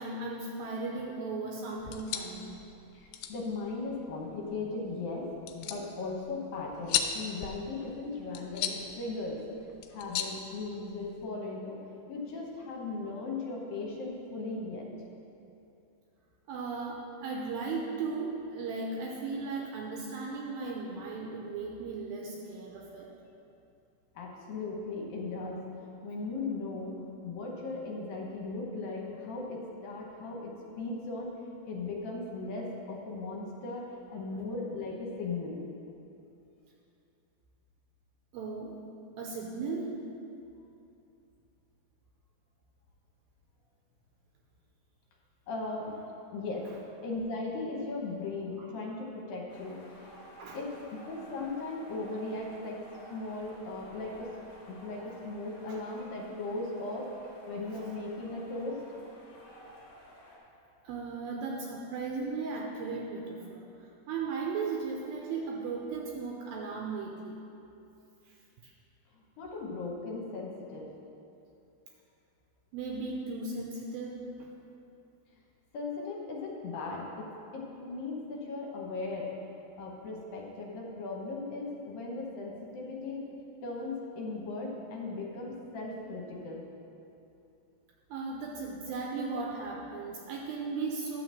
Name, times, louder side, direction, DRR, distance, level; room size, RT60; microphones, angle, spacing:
voice 1, 0.0-2.6 16.5-23.1 38.3-38.8 39.2-39.9 50.4-50.6 55.7-55.8 57.2-57.3 60.8-63.7 64.1-67.4 68.6-68.7 72.7-74.5 88.1-91.2, right 4 dB, 75° right, -1 dB, 2.3 m, -36 dB
sound 1, 1.8-11.3, left 9 dB, 90° left, 2.6 m, -38 dB
voice 2, 2.9-5.3 5.5-9.4 9.9-11.8 12.1-14.9 24.2-25.7 26.0-27.0 27.2-31.3 31.7-33.8 34.1-35.6 45.5-46.0 46.3-46.7 47.0-50.1 50.5-50.7 51.1-52.8 53.1-54.3 54.7-57.1 57.5-58.8 59.1-59.7 69.4-70.9 75.7-77.3 77.5-79.3 79.8-83.2 83.6-86.6, left 3 dB, 70° left, -2 dB, 2.5 m, -37 dB
sound 2, 49.5-60.4, equal, 50° left, 1.2 m, -53 dB
11.5 x 3.9 x 7.3 m, 2.7 s
omnidirectional pair, 4.6 m